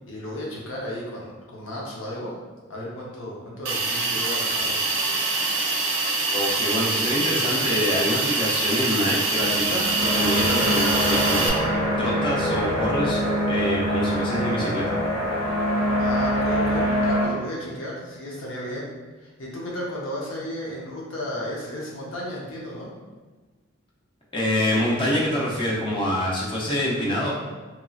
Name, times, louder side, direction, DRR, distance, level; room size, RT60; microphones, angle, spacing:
voice 1, 0.0-2.4 2.7-4.8 16.0-18.9 19.2-22.9, left 1 dB, 70° left, -4 dB, 0.7 m, -34 dB
Hiss, 3.7-11.5, right 3 dB, 60° right, 0.5 m, -24 dB
voice 2, 6.3-11.5 12.0-14.9 24.3-27.3, left 1 dB, 25° left, -5 dB, 0.5 m, -26 dB
sound 1, 9.4-17.3, equal, 5° left, 1.0 m, -24 dB
3.0 x 2.7 x 2.3 m, 1.3 s
head